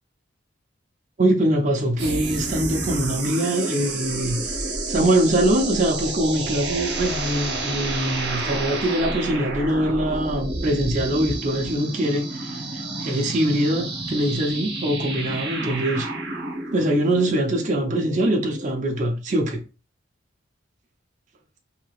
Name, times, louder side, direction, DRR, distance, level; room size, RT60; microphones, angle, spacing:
voice 1, 1.2-4.4 4.9-16.1 16.7-19.6, right 1 dB, 35° right, 0.4 m, -23 dB
sound 1, 2.0-18.8, right 2 dB, 55° right, 0.9 m, -30 dB
3.2 x 2.8 x 2.3 m
head